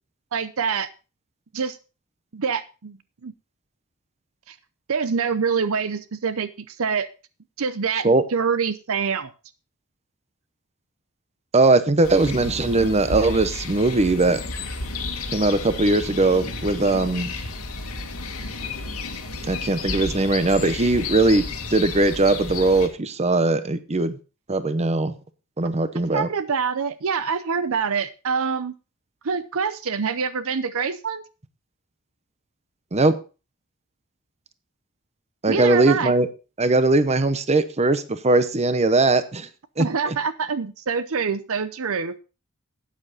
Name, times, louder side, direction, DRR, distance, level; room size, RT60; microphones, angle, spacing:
voice 1, 0.3-0.9 1.5-1.8 2.3-3.0 3.2-3.3 4.5-4.6 4.9-7.1 7.6-9.3 26.1-28.7 29.2-31.2 35.5-36.1 39.8-42.2, right 5 dB, 65° right, 14 dB, 0.7 m, -25 dB
voice 2, 11.5-14.4 15.3-17.3 19.5-21.5 21.7-24.2 24.5-25.1 25.6-26.3 32.9-33.2 35.4-36.3 36.6-39.5 39.8-40.2, right 2 dB, 30° right, 12 dB, 0.9 m, -20 dB
sound 1, 12.0-22.9, left 3 dB, 85° left, 2.3 m, -32 dB
13.0 x 9.0 x 4.1 m, 0.33 s
head